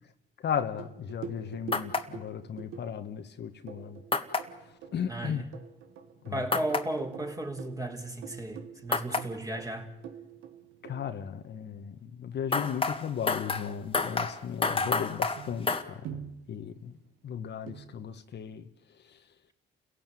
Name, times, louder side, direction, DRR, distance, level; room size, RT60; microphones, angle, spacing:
voice 1, 0.4-4.0 4.5-5.5 6.2-6.4 10.8-19.3, left 8 dB, 60° left, 1.5 m, -36 dB
sound 1, 0.8-12.0 14.9-15.0 15.4-17.1 17.7-18.0, right 7 dB, 85° right, 1.8 m, -46 dB
Ping Pong, 1.7-2.0 4.1-4.4 6.5-6.8 8.9-9.2 12.5-15.8, left 4 dB, 25° left, 1.8 m, -29 dB
voice 2, 5.1-5.4 6.3-9.9, right 1 dB, 15° right, 3.9 m, -35 dB
29.0 x 16.5 x 9.3 m
cardioid pair, 90°, 20 cm